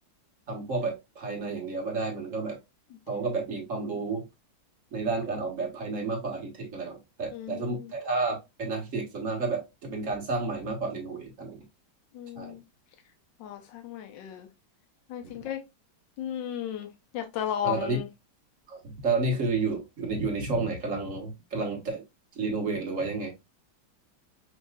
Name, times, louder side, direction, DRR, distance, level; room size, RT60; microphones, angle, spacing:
voice 1, 0.5-2.6 3.1-4.2 4.9-11.6 12.4-12.5 15.2-15.4 17.6-18.0 18.7-22.0 22.3-23.3, right 3 dB, 45° right, 1.4 m, -31 dB
voice 2, 7.3-7.9 12.1-12.6 13.4-14.5 15.1-15.6 16.2-18.1, left 10 dB, 70° left, 1.5 m, -34 dB
5.4 x 3.0 x 2.3 m
omnidirectional pair, 2.1 m